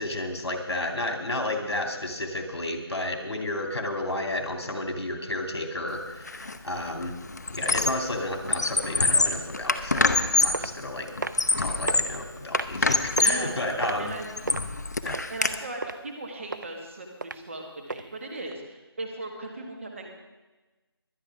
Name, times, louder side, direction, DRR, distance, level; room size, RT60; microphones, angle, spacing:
voice 1, 0.0-7.2 7.5-11.1 11.6-14.1 15.0-15.2, left 1 dB, 75° left, 3 dB, 2.6 m, -31 dB
Squeak, 6.3-6.6 6.9-8.1 8.4-10.7 11.2-12.2 12.5-13.5 14.0-15.5, left 3 dB, 40° left, 0.7 m, -25 dB
footstep girl, 10.0-10.2 10.5-10.7 11.2-11.5 11.9-12.0 12.5-12.8 13.2-13.4 13.8-14.6 15.1-15.5 15.8-15.9 16.5-16.7 17.2-17.4 17.9-18.0 18.5-18.6, right 3 dB, 45° right, 0.5 m, -32 dB
voice 2, 13.1-13.6 14.0-14.3 15.3-20.1, right 2 dB, 30° right, 1 dB, 1.9 m, -38 dB
23.0 x 9.6 x 3.6 m, 1.2 s
figure-of-eight pair, 175°, 14 cm